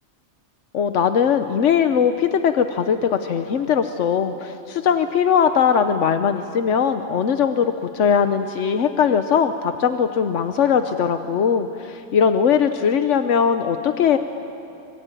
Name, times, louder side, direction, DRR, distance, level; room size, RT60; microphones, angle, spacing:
voice 1, 0.7-14.2, left 7 dB, 90° left, 8 dB, 1.2 m, -20 dB
25.5 x 24.0 x 9.0 m, 2.8 s
omnidirectional pair, 1.2 m